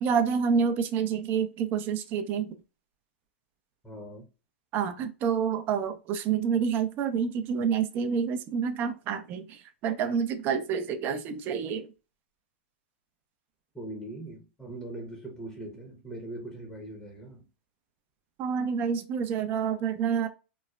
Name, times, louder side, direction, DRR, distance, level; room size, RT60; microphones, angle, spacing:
voice 1, 0.0-2.5 4.7-11.9 18.4-20.3, right 7 dB, 35° right, 0.4 m, -28 dB
voice 2, 3.8-4.3 13.7-17.5, right 1 dB, 5° left, 0.7 m, -41 dB
3.0 x 2.0 x 2.3 m
hypercardioid pair, 125°, 6 cm